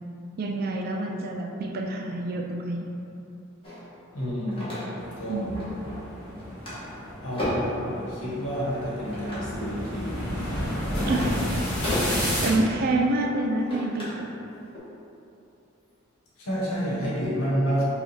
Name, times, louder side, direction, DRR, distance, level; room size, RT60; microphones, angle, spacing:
voice 1, 0.4-2.9 5.3-5.7 11.1-11.6 12.1-14.3, right 2 dB, 45° right, 2 dB, 0.3 m, -28 dB
sound 1, 3.6-5.2 5.6-6.1 6.4-7.8 8.5-9.5 10.1-14.2 14.6-14.8, left 1 dB, 25° left, 1.1 m, -34 dB
voice 2, 4.1-5.5 7.2-10.3 16.4-17.8, equal, 85° left, -7 dB, 1.2 m, -29 dB
sound 2, 5.0-12.6, equal, 5° left, 1.2 m, -31 dB
5.1 x 2.4 x 3.2 m, 2.8 s
head